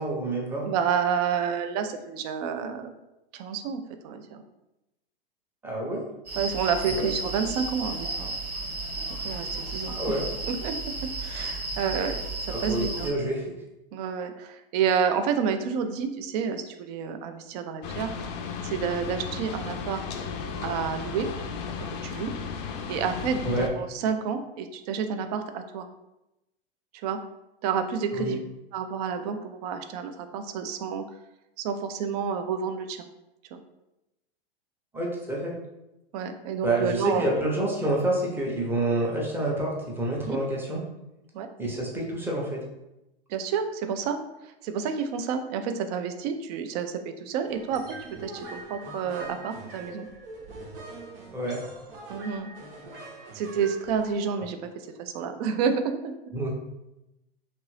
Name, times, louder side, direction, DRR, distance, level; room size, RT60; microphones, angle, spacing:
voice 1, 0.0-0.7 5.6-6.0 6.9-7.1 9.9-10.2 12.5-13.5 23.4-23.7 28.1-28.3 34.9-35.5 36.6-40.8 41.6-42.6 51.3-51.6 56.3-56.5, right 1 dB, 5° right, -2 dB, 0.7 m, -28 dB
voice 2, 0.6-2.9 3.3-4.4 6.4-8.3 9.2-10.2 10.5-10.8 11.2-12.2 12.5-13.1 13.9-18.1 18.6-20.0 20.4-21.3 21.8-22.3 22.9-25.9 27.0-27.2 27.6-28.4 28.7-31.1 31.6-33.0 33.5-33.6 36.1-37.5 40.3-40.4 41.3-41.5 43.3-50.1 52.1-52.5 53.3-56.1, right 6 dB, 45° right, 7 dB, 0.4 m, -29 dB
sound 1, 6.3-13.1, right 2 dB, 20° right, 1.1 m, -33 dB
sound 2, 17.8-23.7, left 5 dB, 45° left, 0.5 m, -35 dB
sound 3, 47.5-54.2, right 2 dB, 70° right, 0.9 m, -43 dB
2.9 x 2.6 x 3.1 m, 0.92 s
hypercardioid pair, 110°, 30 cm